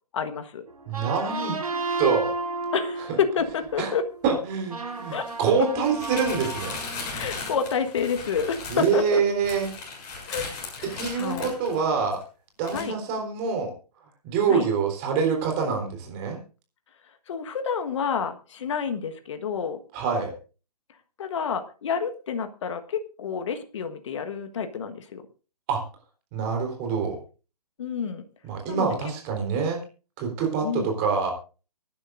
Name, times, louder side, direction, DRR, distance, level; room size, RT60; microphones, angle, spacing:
voice 1, 0.1-0.6 2.7-4.1 5.1-5.3 5.6-5.7 7.1-9.2 10.3-11.5 12.7-12.9 14.5-14.6 17.3-19.8 21.2-25.2 27.8-28.2 28.7-29.0 30.6-30.9, left 6 dB, 50° left, 8 dB, 1.4 m, -29 dB
sound 1, 0.7-7.7, right 3 dB, 65° right, 3.9 m, -33 dB
voice 2, 0.9-1.6 2.0-2.3 3.1-3.2 3.8-3.9 4.2-6.8 8.7-9.7 11.0-12.2 12.6-13.7 14.2-16.4 19.9-20.3 25.7-25.8 26.3-27.2 28.4-29.8 30.2-31.3, right 5 dB, 25° right, 2 dB, 3.9 m, -25 dB
sound 2, 3.4-3.5 5.0-12.2 12.6-12.8, left 4 dB, 30° left, 6.7 m, -37 dB
24.5 x 10.5 x 2.6 m, 0.35 s
figure-of-eight pair, 140°, 20 cm